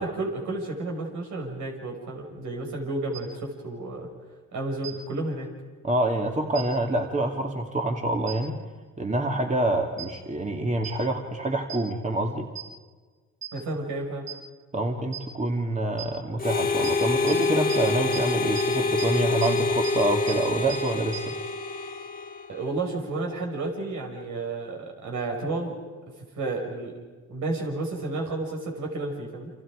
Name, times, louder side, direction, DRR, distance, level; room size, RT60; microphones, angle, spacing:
voice 1, 0.0-4.1 4.5-5.5 13.5-14.3 22.5-25.7 26.4-26.9 27.3-29.5, right 2 dB, 75° right, 0 dB, 5.8 m, -31 dB
sound 1, 3.1-3.2 4.8-4.9 6.5-6.6 8.3-8.4 10.0-10.1 10.8-10.9 11.7-11.8 12.5-12.6 13.4-13.5 14.3-14.4 15.1-15.2 16.0-16.1 16.8-16.9 17.3-17.4 17.7-17.8 18.1-18.2 18.5-18.6 19.0-19.1 19.4-19.5 19.8-19.9 20.3-20.4 20.7-20.8 21.1-21.2, right 11 dB, 40° right, 6.5 m, -35 dB
voice 2, 5.8-8.6 9.0-12.5 14.7-21.3, right 1 dB, 25° right, 3 dB, 2.3 m, -27 dB
Harmonica, 16.4-22.8, left 3 dB, 30° left, 2.2 m, -26 dB
29.5 x 27.0 x 5.0 m, 1.4 s
cardioid pair, 90°, 30 cm